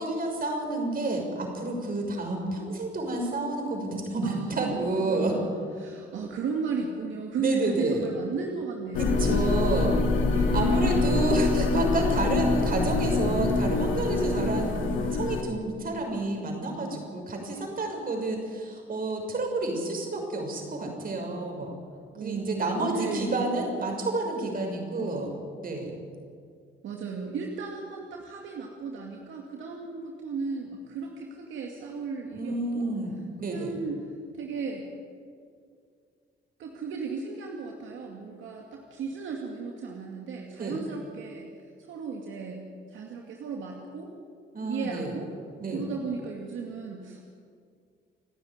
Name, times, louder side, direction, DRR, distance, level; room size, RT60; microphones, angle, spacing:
voice 1, 0.0-5.4 7.4-8.0 9.0-10.0 10.3-21.7 22.2-25.3 25.6-26.0 32.3-33.7 40.6-40.8 44.5-45.1 45.6-45.9, right 2 dB, 45° right, 2 dB, 6.1 m, -30 dB
voice 2, 4.2-5.5 5.8-9.4 10.3-11.1 22.1-23.5 26.8-32.9 33.4-34.0 34.3-34.9 36.6-41.5 41.8-44.1 44.6-45.3 45.7-47.3, right 5 dB, 75° right, 0 dB, 2.4 m, -35 dB
sound 1, 8.9-15.4, left 3 dB, 85° left, 2.3 m, -25 dB
29.5 x 10.0 x 9.6 m, 2.2 s
cardioid pair, 90°, 20 cm